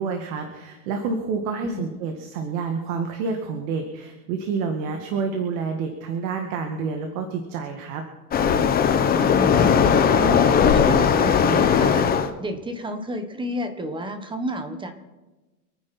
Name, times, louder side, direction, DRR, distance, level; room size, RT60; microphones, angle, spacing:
voice 1, 0.0-8.0, right 5 dB, 60° right, 4 dB, 2.1 m, -28 dB
voice 2, 1.6-1.9 8.9-14.9, equal, 10° right, 8 dB, 1.3 m, -31 dB
Waves surf, 8.3-12.3, left 7 dB, 20° left, 1.0 m, -18 dB
27.0 x 10.0 x 4.4 m, 1.2 s
supercardioid pair, 140°, 47 cm